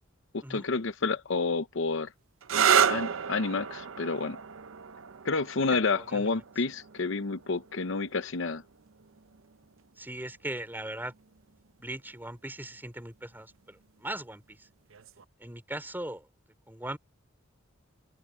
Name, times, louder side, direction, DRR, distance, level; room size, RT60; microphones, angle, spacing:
voice 1, 0.3-2.1 2.9-4.4 5.2-8.6, left 4 dB, 65° left, 0.8 m, -29 dB
sound 1, 2.4-9.9 10.9-11.4 14.9-15.2, right 8 dB, 75° right, 0.7 m, -31 dB
voice 2, 5.9-6.4 10.0-11.1 11.8-14.7 15.4-16.2 16.7-17.0, right 1 dB, 10° right, 3.3 m, -39 dB
head